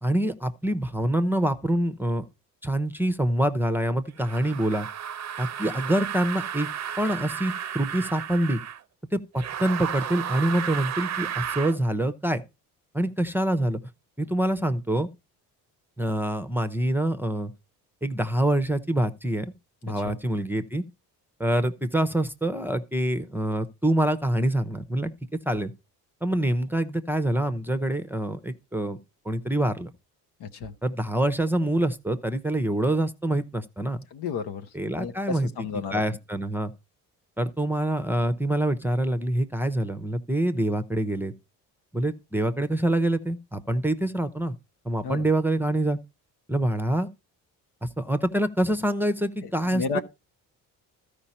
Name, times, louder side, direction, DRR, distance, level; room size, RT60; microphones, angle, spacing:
voice 1, 0.0-2.3 2.6-4.9 5.4-6.7 7.0-8.6 9.1-12.4 12.9-13.8 14.2-15.1 16.0-17.5 18.0-19.5 19.8-20.8 21.4-25.1 25.5-25.7 26.2-29.0 29.2-29.9 30.8-34.0 34.7-36.7 37.4-41.3 41.9-44.6 44.8-46.0 46.5-47.1 47.8-49.8, right 1 dB, 5° right, 0.8 m, -26 dB
sound 1, 4.2-8.8 9.3-11.8, right 9 dB, 40° right, 0.6 m, -33 dB
voice 2, 19.9-20.2 30.4-30.7 34.1-34.6 35.0-36.0 45.0-45.3 49.6-50.0, left 5 dB, 75° left, 1.0 m, -32 dB
13.0 x 5.1 x 4.2 m
supercardioid pair, 70°, 41 cm